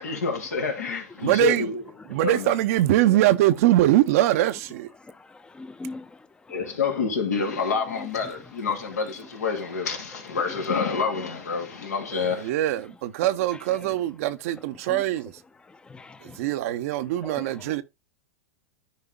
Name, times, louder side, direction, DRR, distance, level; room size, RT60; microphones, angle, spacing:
voice 1, 0.0-1.8 2.1-2.6 6.5-12.5, left 5 dB, 90° left, 2.9 m, -28 dB
voice 2, 1.2-1.7 2.1-4.9 12.1-15.3 16.2-17.8, right 14 dB, 65° right, 0.7 m, -22 dB
voice 3, 5.6-6.1 10.9-11.0 14.9-15.0 15.9-16.4 17.2-17.6, left 2 dB, 10° left, 0.7 m, -39 dB
13.5 x 4.9 x 2.2 m
hypercardioid pair, 110°, 8 cm